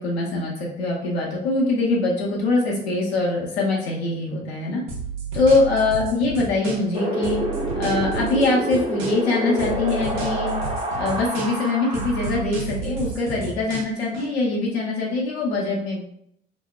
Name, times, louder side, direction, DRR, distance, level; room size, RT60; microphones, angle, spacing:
voice 1, 0.0-4.8 5.3-7.4 7.7-10.5 10.9-16.0, left 2 dB, 85° left, -3 dB, 0.6 m, -23 dB
sound 1, 4.9-7.0 7.2-9.3 9.6-11.7 11.9-14.2, right 5 dB, 80° right, 0.6 m, -32 dB
Wind, 6.9-12.4, equal, 15° right, 0.5 m, -27 dB
2.8 x 2.0 x 2.2 m, 0.70 s
hypercardioid pair, 55°, 31 cm